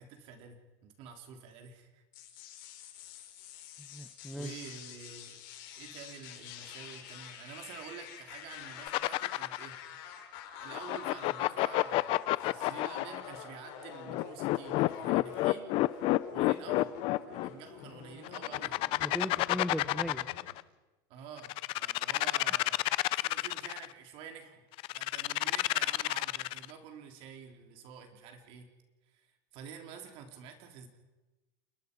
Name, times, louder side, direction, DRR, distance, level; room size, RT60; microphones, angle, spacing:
voice 1, 0.0-2.0 4.3-5.4 5.7-9.7 10.6-16.9 17.2-18.8 21.1-22.8 23.2-28.7 29.1-30.9, right 7 dB, 50° right, 4 dB, 3.6 m, -49 dB
sound 1, 2.1-20.6, left 9 dB, 65° left, 4.6 m, -47 dB
voice 2, 3.8-4.5 19.0-20.3, equal, ahead, 9 dB, 0.9 m, -38 dB
sound 2, 8.9-9.8 10.7-13.2 14.1-17.5 18.2-20.6 21.4-23.9 24.8-26.7, left 19 dB, 50° left, 0.6 m, -29 dB
29.0 x 21.0 x 5.4 m, 1.1 s
supercardioid pair, 145°, 12 cm